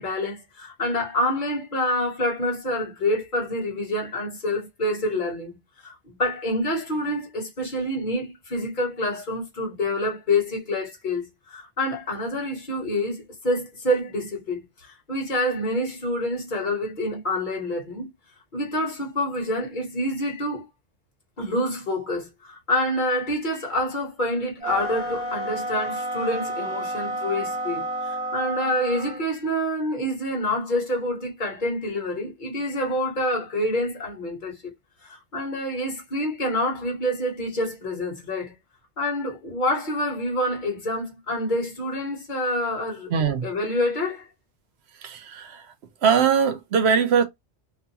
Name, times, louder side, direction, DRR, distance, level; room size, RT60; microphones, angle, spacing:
voice 1, 0.0-18.1 18.5-20.6 21.4-34.6 35.0-38.5 39.0-43.1 43.4-44.3, left 1 dB, 45° left, 1.2 m, -27 dB
sound 1, 24.6-29.2, right 1 dB, 5° right, 0.7 m, -30 dB
voice 2, 43.1-43.5 45.0-45.7 46.0-47.2, right 6 dB, 70° right, 0.9 m, -21 dB
2.5 x 2.3 x 2.7 m
omnidirectional pair, 1.1 m